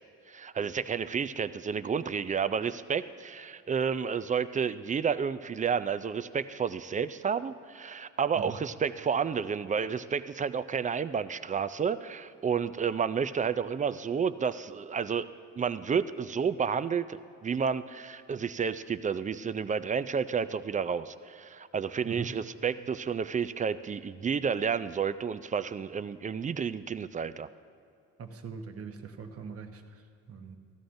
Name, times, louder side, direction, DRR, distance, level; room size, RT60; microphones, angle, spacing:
voice 1, 0.3-15.3 15.6-27.5, right 6 dB, 25° right, 13 dB, 0.3 m, -31 dB
voice 2, 22.0-22.4 28.2-30.6, right 5 dB, 50° right, 5 dB, 1.0 m, -41 dB
16.0 x 12.5 x 2.6 m, 2.5 s
cardioid pair, 90°, 30 cm